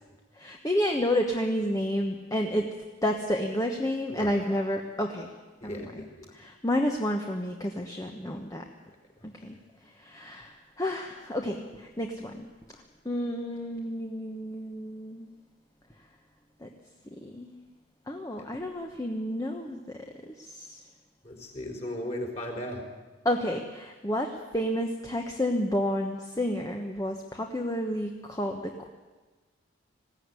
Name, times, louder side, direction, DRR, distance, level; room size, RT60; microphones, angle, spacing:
voice 1, 0.4-2.7 3.0-5.3 5.6-6.1 6.3-8.6 9.2-9.6 10.0-12.5 13.0-15.3 16.6-16.7 17.2-17.5 18.1-19.8 20.3-20.8 23.2-28.9, equal, 15° left, 2 dB, 1.2 m, -30 dB
voice 2, 5.6-6.3 18.4-18.5 21.2-22.8, left 1 dB, 35° left, 1 dB, 4.6 m, -36 dB
20.5 x 16.0 x 9.8 m, 1.2 s
head